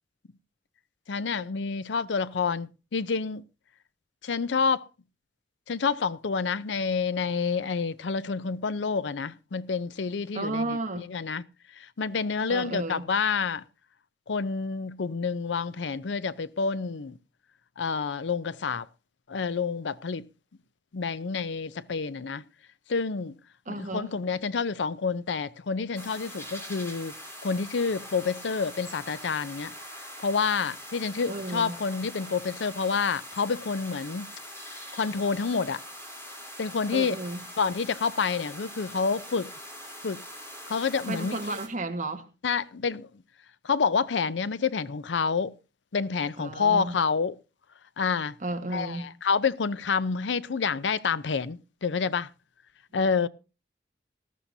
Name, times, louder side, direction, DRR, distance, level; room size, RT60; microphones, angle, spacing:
voice 1, 1.1-3.4 4.2-4.8 5.7-11.4 11.8-13.6 14.3-17.2 17.8-18.9 19.3-20.2 20.9-22.4 22.9-23.3 23.7-27.1 27.4-29.7 30.2-34.3 34.9-35.8 36.6-37.2 37.6-39.5 40.0-40.2 40.7-41.6 42.4-43.1 43.6-45.5 45.9-47.4 48.0-48.3 48.7-52.3 52.9-53.3, left 5 dB, 90° left, 0.6 m, -28 dB
voice 2, 10.3-11.1 12.5-13.1 23.6-24.1 31.3-31.8 36.9-37.5 41.1-42.3 46.4-47.0 48.4-49.0, right 2 dB, 45° right, 1.5 m, -33 dB
sound 1, 26.0-41.7, equal, 15° left, 3.4 m, -43 dB
18.5 x 13.0 x 2.7 m
head